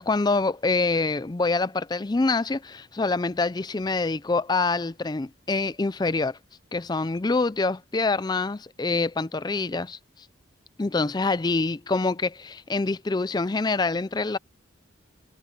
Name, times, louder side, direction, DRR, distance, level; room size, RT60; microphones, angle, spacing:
voice 1, 0.0-6.4 6.7-10.0 10.8-14.4, left 3 dB, 20° left, 0.4 m, -25 dB
head